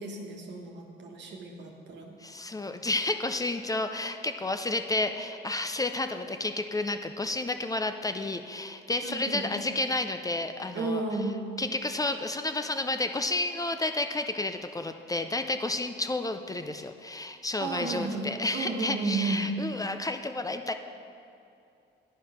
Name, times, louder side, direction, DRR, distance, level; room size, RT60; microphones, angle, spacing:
voice 1, 0.0-2.2 9.0-9.5 10.7-11.4 17.6-19.4, right 3 dB, 65° right, 0 dB, 1.3 m, -33 dB
voice 2, 2.2-11.0 11.6-20.7, left 2 dB, 20° left, 8 dB, 0.4 m, -31 dB
10.0 x 4.8 x 5.6 m, 2.6 s
cardioid pair, 90°, 20 cm